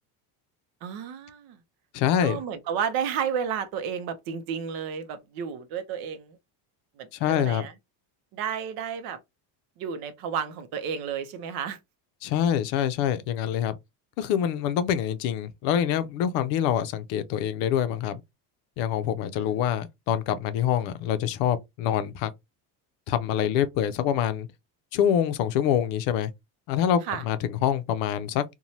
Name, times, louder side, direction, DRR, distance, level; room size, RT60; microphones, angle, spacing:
voice 1, 0.8-1.6 2.2-6.4 7.0-7.7 8.3-9.2 9.8-11.8 19.3-19.5 27.1-27.2, right 7 dB, 55° right, 0.6 m, -32 dB
voice 2, 1.9-2.4 7.2-7.7 12.2-13.8 14.2-18.2 18.8-22.3 23.1-24.5 24.9-26.3 26.7-28.4, left 9 dB, 75° left, 0.6 m, -25 dB
2.7 x 2.2 x 3.0 m
cardioid pair, 170°, 47 cm